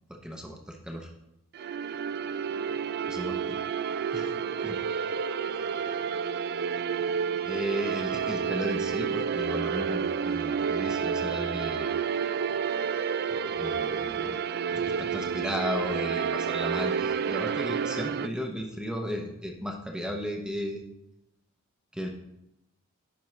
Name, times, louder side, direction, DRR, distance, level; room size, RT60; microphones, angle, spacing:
voice 1, 0.1-1.1 3.1-3.6 4.1-4.3 4.6-4.8 7.5-11.9 13.3-14.4 14.7-20.8 21.9-22.1, equal, 5° right, 1 dB, 0.6 m, -35 dB
sound 1, 1.5-18.3, right 6 dB, 50° right, 0.3 m, -30 dB
voice 2, 2.1-3.6 4.1-6.4, left 1 dB, 75° left, -2 dB, 2.6 m, -53 dB
10.5 x 5.2 x 3.2 m, 0.85 s
head